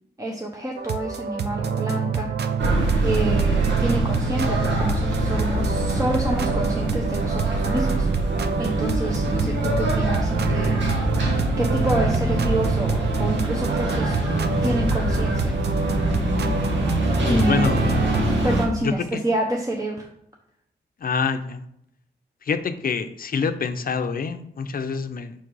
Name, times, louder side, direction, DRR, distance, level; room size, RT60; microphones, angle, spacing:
voice 1, 0.2-2.3 3.0-8.1 8.6-10.8 11.6-14.2 14.6-15.6 17.2-17.7 18.4-20.1, right 1 dB, 20° right, 0 dB, 0.8 m, -28 dB
sound 1, 0.8-18.2, right 6 dB, 65° right, 0.5 m, -27 dB
sound 2, 2.6-18.7, right 1 dB, 85° right, 1.5 m, -24 dB
voice 2, 17.2-17.8 18.8-19.2 21.0-21.6 22.4-25.3, left 5 dB, 55° left, 9 dB, 0.6 m, -26 dB
6.2 x 3.8 x 4.6 m, 0.76 s
wide cardioid pair, 100°, 18 cm